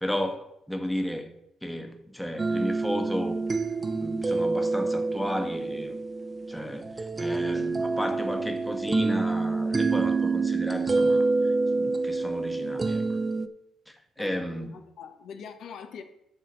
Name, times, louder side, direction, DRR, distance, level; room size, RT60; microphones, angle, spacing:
voice 1, 0.0-3.4 3.8-6.0 6.5-13.0 13.9-14.7, equal, 5° left, 1.1 m, -33 dB
sound 1, 2.4-13.5, right 3 dB, 25° right, 0.5 m, -27 dB
voice 2, 14.2-16.0, left 6 dB, 70° left, 0.9 m, -43 dB
10.5 x 3.7 x 6.7 m
cardioid pair, 90°, 0 cm